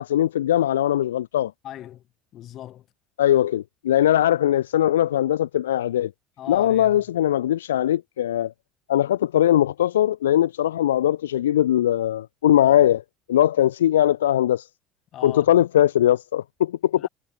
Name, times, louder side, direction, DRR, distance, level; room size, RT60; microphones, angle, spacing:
voice 1, 0.0-1.5 3.2-6.1 6.5-8.5 8.9-13.0 13.3-14.7 15.2-17.1, left 12 dB, 90° left, 1.1 m, -20 dB
voice 2, 1.6-2.0 2.3-2.9 6.4-7.0 15.1-15.5 17.0-17.1, left 12 dB, 55° left, 7.3 m, -39 dB
hypercardioid pair, 65°, 0 cm